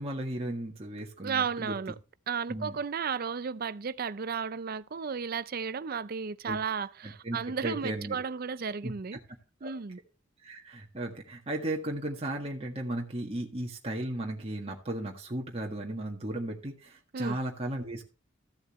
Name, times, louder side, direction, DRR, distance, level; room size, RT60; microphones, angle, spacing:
voice 1, 0.0-1.7 2.5-2.8 6.5-6.6 7.0-8.2 8.8-8.9 9.6-9.8 10.4-18.0, right 1 dB, 30° right, 1.7 m, -35 dB
voice 2, 1.2-1.9 2.3-9.2 9.6-10.0 17.1-17.4, right 6 dB, 50° right, 0.5 m, -34 dB
14.5 x 7.9 x 3.1 m
head